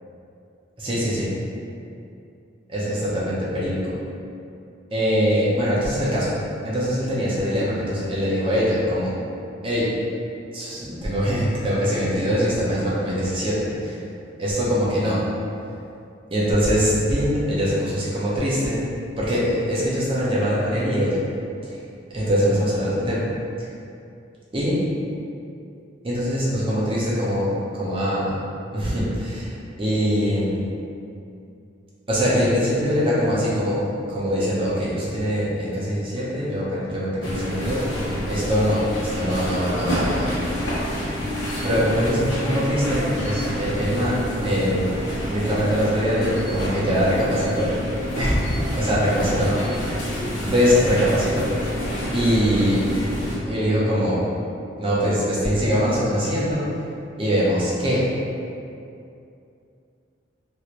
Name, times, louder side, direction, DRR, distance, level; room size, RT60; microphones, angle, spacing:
voice 1, 0.8-1.3 2.7-3.9 4.9-6.3 6.6-9.1 9.6-9.9 10.5-14.0 14.4-15.2 16.3-18.8 19.2-21.2 21.6-21.8 22.1-23.2 24.5-24.8 26.0-27.5 27.7-28.4 28.7-30.6 32.1-33.8 34.1-40.3 41.6-45.0 45.3-47.7 48.2-49.6 50.4-51.7 52.1-52.8 53.4-54.2 54.8-56.7 57.2-58.1, equal, 30° right, -7 dB, 0.6 m, -22 dB
sound 1, 37.2-53.4, equal, 90° left, 0.8 m, -28 dB
3.0 x 2.9 x 2.5 m, 2.6 s
head